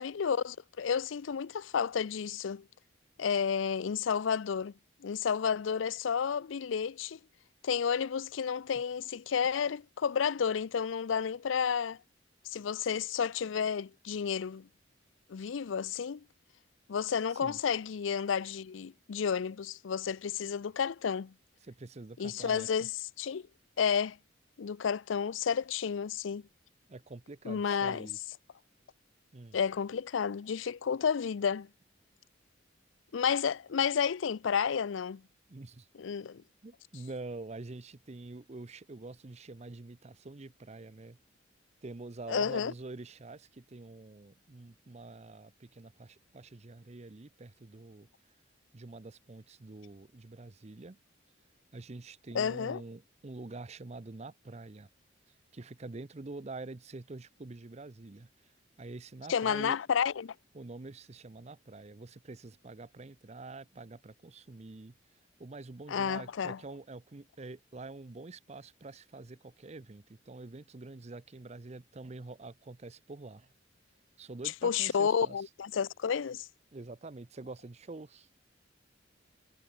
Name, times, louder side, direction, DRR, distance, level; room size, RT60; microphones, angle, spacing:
voice 1, 0.0-2.6 3.2-4.7 5.0-7.2 7.6-12.0 12.5-14.7 15.3-16.2 16.9-21.3 22.2-22.9 23.2-23.4 23.8-24.2 24.6-26.4 27.4-28.1 29.5-31.7 33.1-35.2 36.0-36.4 42.3-42.7 52.3-52.8 59.3-60.3 65.9-66.6 74.6-76.5, left 7 dB, 85° left, 0.5 m, -31 dB
voice 2, 21.6-22.9 26.9-28.2 29.3-29.6 35.5-35.9 36.6-41.2 41.8-48.1 48.7-51.0 51.7-54.9 55.5-58.3 58.8-59.8 60.5-65.0 65.4-73.5 74.2-75.4 76.7-78.3, right 2 dB, 35° right, 0.6 m, -46 dB
head